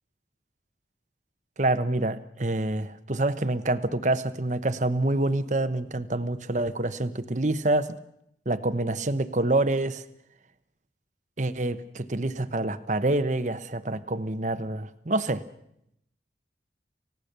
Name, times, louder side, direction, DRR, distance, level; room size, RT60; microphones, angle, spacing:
voice 1, 1.6-8.0 8.5-10.0 11.4-15.4, right 2 dB, 40° right, 13 dB, 1.0 m, -27 dB
29.5 x 16.5 x 6.8 m, 0.77 s
head